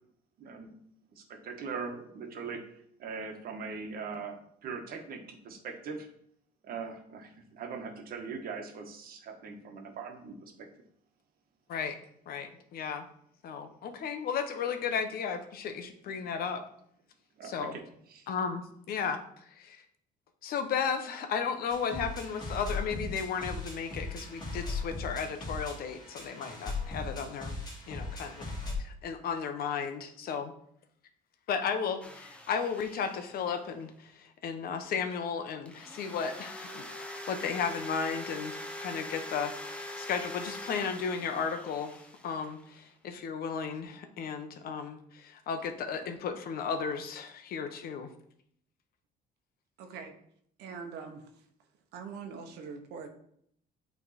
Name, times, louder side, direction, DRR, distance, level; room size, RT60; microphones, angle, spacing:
voice 1, 0.4-0.8 1.1-6.1 6.6-10.7 17.4-17.8 18.1-18.3, right 5 dB, 60° right, 4 dB, 1.2 m, -41 dB
voice 2, 12.3-13.0 13.4-16.6 17.4-17.7 18.3-19.2 19.6-19.8 20.4-27.5 27.9-28.5 28.8-30.5 31.5-48.1, left 6 dB, 65° left, 7 dB, 0.9 m, -34 dB
sound 1, 21.7-28.8, left 3 dB, 25° left, 2.2 m, -38 dB
sound 2, 32.0-33.8 35.7-42.8, left 1 dB, 5° left, 0.8 m, -43 dB
voice 3, 49.8-50.1 50.6-51.3 51.9-53.1, right 5 dB, 85° right, 6 dB, 1.0 m, -42 dB
8.4 x 3.5 x 4.2 m, 0.68 s
cardioid pair, 110°, 17 cm